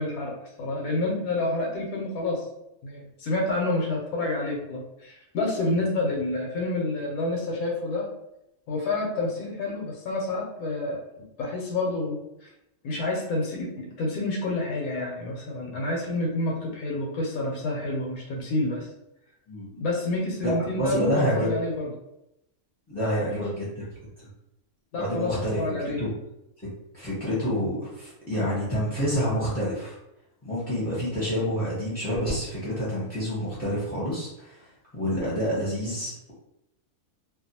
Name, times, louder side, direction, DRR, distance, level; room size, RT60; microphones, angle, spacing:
voice 1, 0.0-2.5 2.8-8.1 8.7-11.0 11.4-12.5 12.8-18.9 19.7-21.9 23.0-23.4 24.9-26.0, left 2 dB, 90° left, -1 dB, 1.1 m, -29 dB
voice 2, 20.8-21.5 22.9-23.8 24.9-25.6 26.0-26.1 26.9-29.9 30.4-34.7 34.9-36.3, equal, 15° left, -9 dB, 0.6 m, -28 dB
2.6 x 2.2 x 2.8 m, 0.85 s
omnidirectional pair, 1.5 m